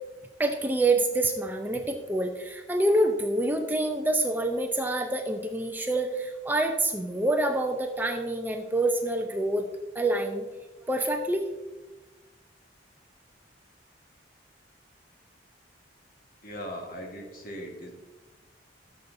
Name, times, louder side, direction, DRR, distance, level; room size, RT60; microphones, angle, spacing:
voice 1, 0.4-9.6 9.9-10.5 10.9-11.4, right 1 dB, 10° right, 4 dB, 0.5 m, -26 dB
voice 2, 16.4-17.9, equal, 50° left, 1 dB, 1.5 m, -39 dB
13.5 x 7.0 x 2.6 m, 1.2 s
head